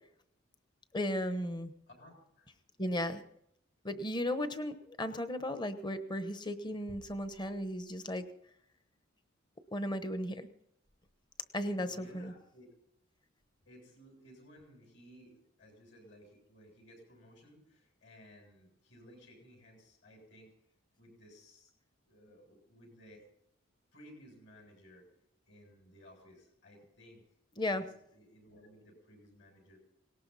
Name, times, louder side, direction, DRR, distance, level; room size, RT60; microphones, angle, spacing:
voice 1, 0.9-1.7 2.8-3.2 3.8-8.2 9.7-10.4 11.5-12.3 27.6-27.9, left 1 dB, 20° left, 10 dB, 1.0 m, -35 dB
voice 2, 1.9-2.5 11.9-12.7 13.6-15.3 15.6-20.5 21.0-21.7 22.0-23.3 23.9-25.1 25.4-27.2 27.7-29.8, equal, 60° left, 1 dB, 7.5 m, -58 dB
19.0 x 18.0 x 4.1 m, 0.76 s
head